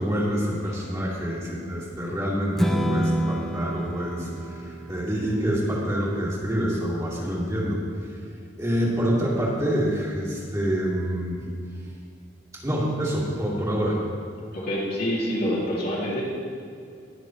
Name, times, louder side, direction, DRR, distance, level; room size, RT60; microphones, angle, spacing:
voice 1, 0.0-7.8 8.6-11.4 12.5-14.0, equal, 20° right, -7 dB, 2.6 m, -26 dB
Strum, 2.6-8.9, right 1 dB, ahead, 0.5 m, -31 dB
voice 2, 14.5-16.2, equal, 55° left, -6 dB, 2.7 m, -27 dB
20.0 x 6.7 x 3.2 m, 2.4 s
head